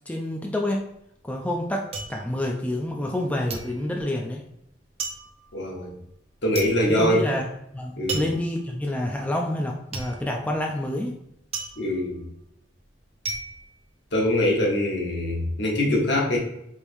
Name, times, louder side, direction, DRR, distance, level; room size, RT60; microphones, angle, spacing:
voice 1, 0.1-0.9 1.2-4.4 6.9-7.5 7.7-11.1, left 1 dB, 10° left, 0 dB, 0.4 m, -28 dB
sound 1, 0.8-3.2 3.5-14.6 14.9-15.5, right 3 dB, 30° right, 0.6 m, -36 dB
voice 2, 5.5-5.9 6.4-7.2 8.0-8.3 11.8-12.2 14.1-16.4, left 1 dB, 60° left, -2 dB, 1.2 m, -23 dB
4.6 x 3.5 x 2.6 m, 0.78 s
head